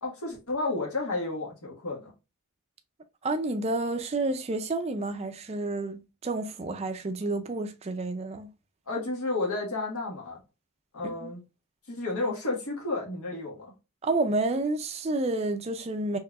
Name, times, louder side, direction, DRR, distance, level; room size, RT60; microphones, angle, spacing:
voice 1, 0.0-2.1 8.9-10.4 10.9-11.4 11.9-13.7, left 2 dB, 75° left, 1.7 m, -31 dB
voice 2, 3.2-8.5 11.0-11.3 14.0-16.2, right 2 dB, 30° right, 0.4 m, -30 dB
4.6 x 3.1 x 2.4 m
head